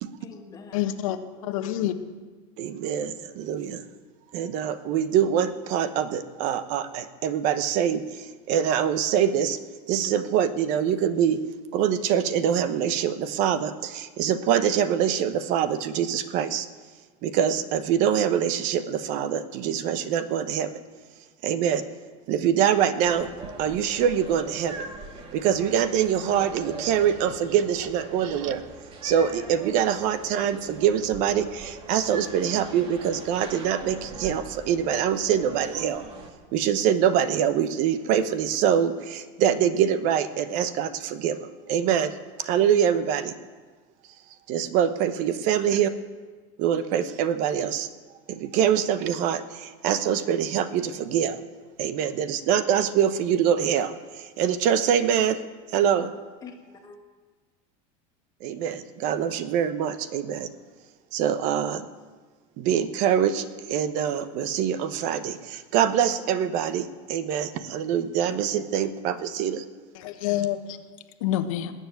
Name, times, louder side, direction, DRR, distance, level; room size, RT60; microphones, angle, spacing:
voice 1, 0.2-0.9 1.4-1.7 56.0-57.0, left 4 dB, 20° left, 3 dB, 2.0 m, -46 dB
voice 2, 0.7-1.2 1.5-1.9 69.9-70.8 71.2-71.7, left 12 dB, 80° left, 7 dB, 1.3 m, -27 dB
voice 3, 2.6-3.8 4.3-9.6 9.9-11.4 11.7-16.7 17.2-20.7 21.4-21.8 22.3-24.9 25.3-28.6 29.0-36.1 36.5-43.3 44.5-45.9 46.6-47.9 48.3-51.4 51.8-55.4 55.7-56.1 58.4-60.5 61.1-61.8 62.6-69.6, right 9 dB, 50° right, 12 dB, 1.0 m, -24 dB
sound 1, 23.0-36.3, right 3 dB, 30° right, 2.0 m, -41 dB
20.0 x 7.5 x 9.2 m, 1.4 s
supercardioid pair, 155°, 17 cm